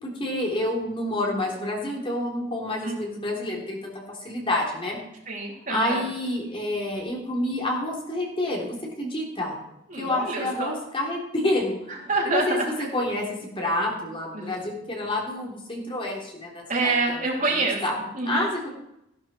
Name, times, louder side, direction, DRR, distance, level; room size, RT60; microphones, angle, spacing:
voice 1, 0.0-3.8 4.1-5.0 5.7-9.6 10.0-17.2 17.8-18.0 18.3-18.7, left 1 dB, 25° left, -2 dB, 3.4 m, -28 dB
voice 2, 5.3-6.1 9.9-10.8 11.9-12.9 14.3-14.5 16.7-18.4, right 3 dB, 40° right, -2 dB, 3.9 m, -27 dB
15.5 x 12.0 x 4.5 m, 0.82 s
head